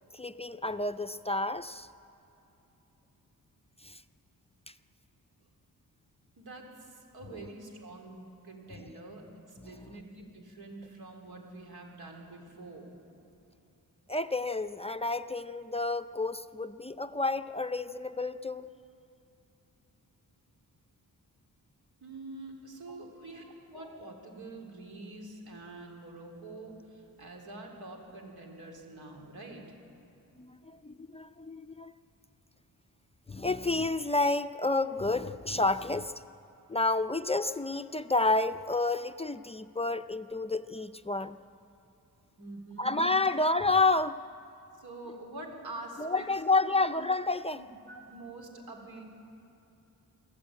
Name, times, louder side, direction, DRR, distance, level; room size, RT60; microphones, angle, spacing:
voice 1, 0.1-1.9 3.8-4.0 9.6-9.9 14.1-18.7 30.4-31.9 33.3-36.1 36.7-41.4 42.8-44.2 46.0-47.6, left 3 dB, 15° left, 10 dB, 0.4 m, -30 dB
voice 2, 6.4-13.0 22.0-29.7 42.4-43.1 44.8-46.3 46.7-46.9 47.5-49.0, right 2 dB, 90° right, 2 dB, 3.9 m, -46 dB
24.5 x 14.5 x 8.8 m, 2.9 s
wide cardioid pair, 110°, 36 cm